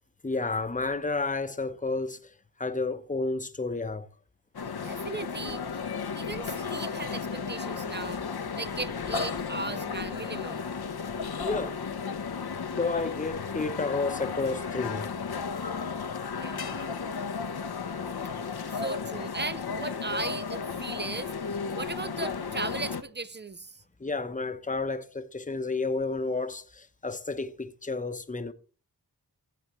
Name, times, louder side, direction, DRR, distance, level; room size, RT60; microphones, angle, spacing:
voice 1, 0.2-2.3 2.6-4.1 11.4-11.8 12.7-15.1 24.0-28.5, left 3 dB, 20° left, 0.9 m, -31 dB
sound 1, 4.5-23.0, left 5 dB, 70° left, 0.9 m, -34 dB
voice 2, 4.8-5.8 6.2-8.3 8.6-10.7 16.3-17.0 18.7-21.3 21.7-23.8, right 3 dB, 30° right, 0.4 m, -37 dB
15.5 x 7.8 x 3.1 m
wide cardioid pair, 65°, 40 cm